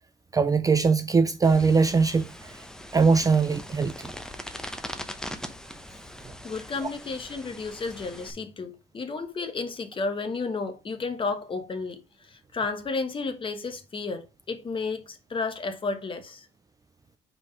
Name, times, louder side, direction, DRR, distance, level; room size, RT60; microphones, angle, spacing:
voice 1, 0.3-2.3 2.9-4.1 6.8-6.9, right 4 dB, 20° right, 0.4 m, -21 dB
sound 1, 1.4-8.3, left 1 dB, 5° left, 0.8 m, -41 dB
voice 2, 6.4-16.5, left 4 dB, 30° left, 1.2 m, -32 dB
4.8 x 3.8 x 5.3 m
cardioid pair, 110°, 17 cm